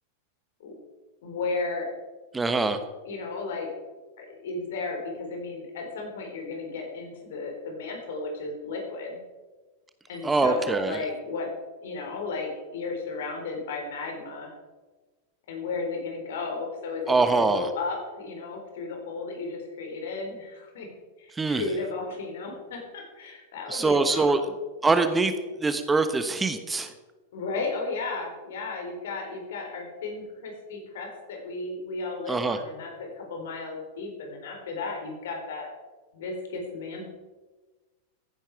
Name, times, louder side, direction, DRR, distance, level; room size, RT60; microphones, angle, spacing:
voice 1, 1.2-1.9 3.1-3.7 4.2-9.2 10.1-11.5 11.8-14.5 15.5-20.9 21.2-24.5 27.3-35.7 36.1-37.1, left 3 dB, 65° left, 2 dB, 4.1 m, -34 dB
voice 2, 2.3-2.8 10.2-11.0 17.1-17.7 21.3-21.6 23.7-24.4 24.8-25.3 25.6-26.9 32.3-32.6, right 3 dB, 15° right, 9 dB, 1.1 m, -23 dB
15.0 x 10.5 x 4.8 m, 1.3 s
figure-of-eight pair, 95°, 0 cm